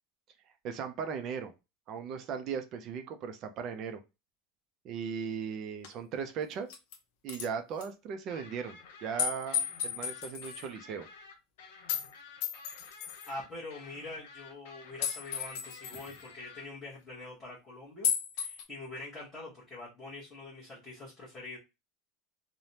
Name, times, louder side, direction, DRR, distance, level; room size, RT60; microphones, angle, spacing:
voice 1, 0.6-1.5 1.9-4.0 4.8-6.7 7.2-11.1, right 6 dB, 35° right, 8 dB, 0.4 m, -37 dB
sound 1, 5.8-5.9 6.5-7.0 7.3-7.5 7.8-7.9 9.2-10.7 11.9-12.1 12.4-13.3 15.0-16.1 18.0-18.6, left 8 dB, 55° left, 0.5 m, -34 dB
sound 2, 8.3-16.6, left 4 dB, 80° left, 0.9 m, -52 dB
voice 2, 13.3-18.1 18.4-21.6, left 2 dB, 10° left, -9 dB, 0.9 m, -44 dB
3.2 x 2.0 x 2.7 m, 0.26 s
supercardioid pair, 175°, 0 cm